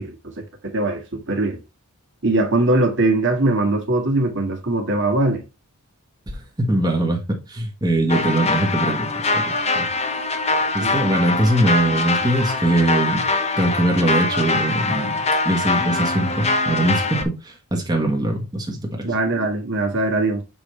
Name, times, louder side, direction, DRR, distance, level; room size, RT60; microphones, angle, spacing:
voice 1, 0.0-1.6 2.2-5.4 10.8-11.0 19.0-20.4, right 2 dB, 55° right, 2.0 m, -21 dB
voice 2, 6.3-9.9 10.7-13.2 13.6-19.1, right 1 dB, 20° right, 1.4 m, -22 dB
sound 1, 8.1-17.2, left 3 dB, 30° left, 1.1 m, -23 dB
7.4 x 5.0 x 3.2 m
head